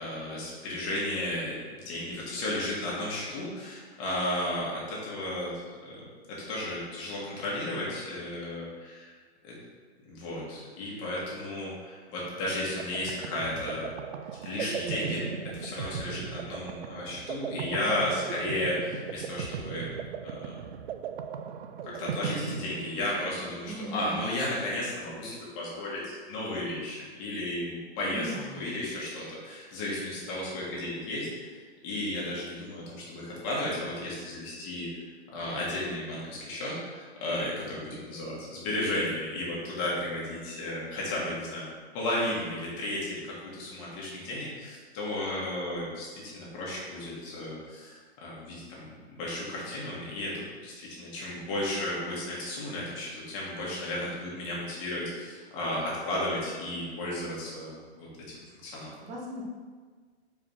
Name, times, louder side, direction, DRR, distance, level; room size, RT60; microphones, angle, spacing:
voice 1, 0.0-1.6 1.8-5.5 5.9-6.0 6.3-9.1 9.4-9.6 10.1-13.9 14.4-15.3 15.5-19.9 20.2-20.6 21.8-31.3 31.8-34.9 35.3-41.7 41.9-48.9 49.2-58.1 58.6-58.9, left 1 dB, 25° left, -5 dB, 1.8 m, -34 dB
sound 1, 12.5-23.3, right 7 dB, 70° right, 0.5 m, -37 dB
voice 2, 23.7-24.3 28.1-28.7 59.0-59.4, right 1 dB, 10° right, -3 dB, 0.6 m, -38 dB
4.8 x 4.1 x 5.6 m, 1.5 s
hypercardioid pair, 165°, 33 cm